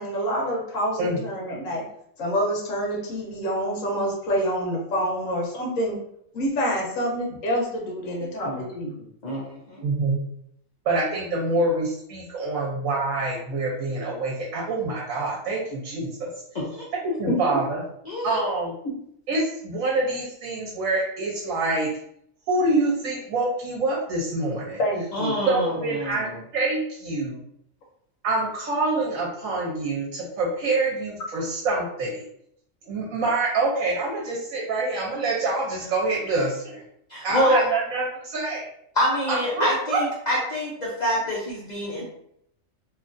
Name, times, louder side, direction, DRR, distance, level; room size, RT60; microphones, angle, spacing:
voice 1, 0.0-1.8 2.2-6.0 6.3-8.9 17.3-17.6 24.8-25.4, equal, 75° left, -1 dB, 1.2 m, -27 dB
voice 2, 9.2-9.8 16.5-16.9 18.1-18.5 25.1-26.4 37.1-37.6 39.0-42.0, equal, 60° left, -5 dB, 0.4 m, -26 dB
voice 3, 9.8-10.2 10.8-16.3 17.0-17.8 18.2-18.7 19.3-21.9 22.5-24.8 25.5-26.3 26.5-27.4 28.2-32.2 32.9-36.8 37.2-38.1 38.3-38.6 39.3-40.0, right 2 dB, 80° right, -3 dB, 1.1 m, -26 dB
2.9 x 2.3 x 2.5 m, 0.72 s
omnidirectional pair, 1.4 m